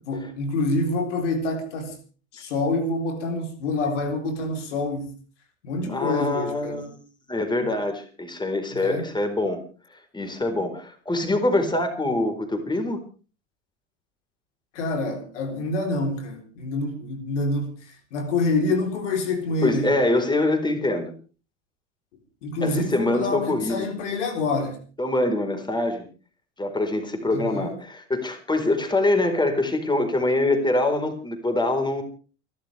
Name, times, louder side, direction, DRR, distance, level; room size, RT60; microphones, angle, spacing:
voice 1, 0.1-2.0 2.3-5.1 5.6-6.9 8.7-9.0 14.7-20.0 22.4-24.8 27.3-27.7, left 2 dB, 75° left, 3.8 m, -27 dB
voice 2, 5.9-7.0 7.3-9.6 9.9-13.0 19.6-21.1 22.6-24.0 25.0-26.1 26.6-32.0, left 2 dB, 10° left, 4.4 m, -24 dB
29.0 x 12.0 x 3.4 m
hypercardioid pair, 75°, 36 cm